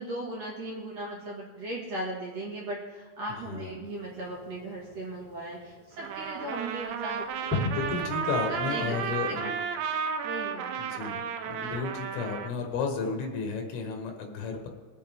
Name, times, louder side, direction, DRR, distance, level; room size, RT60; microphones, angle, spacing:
voice 1, 0.0-7.7 8.3-9.5 10.2-11.2, right 1 dB, 50° right, -3 dB, 2.4 m, -38 dB
voice 2, 3.3-3.8 7.7-9.6 10.8-14.7, left 5 dB, 80° left, 3 dB, 3.6 m, -33 dB
Fireworks, 3.8-9.2, left 2 dB, 5° left, 2.4 m, -39 dB
Trumpet, 6.0-12.5, right 6 dB, 90° right, 2.9 m, -33 dB
22.0 x 8.6 x 3.6 m, 1.4 s
omnidirectional pair, 5.1 m